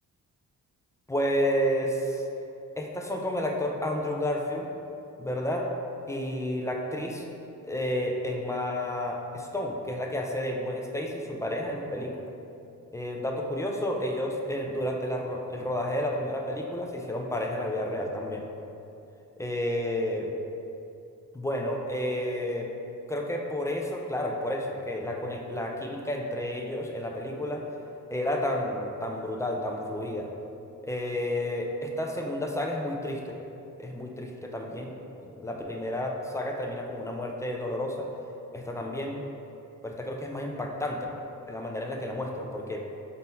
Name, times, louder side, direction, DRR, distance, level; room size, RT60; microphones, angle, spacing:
voice 1, 1.1-2.3 2.8-4.7 5.2-5.7 6.1-7.2 7.6-12.1 12.9-18.5 19.4-20.3 21.3-22.7 23.1-27.6 28.1-30.3 30.8-33.4 33.8-34.9 35.2-38.1 38.5-39.2 39.8-41.1 41.5-42.8, left 1 dB, 10° left, 0 dB, 0.3 m, -31 dB
3.7 x 2.6 x 4.2 m, 2.7 s
cardioid pair, 100°, 34 cm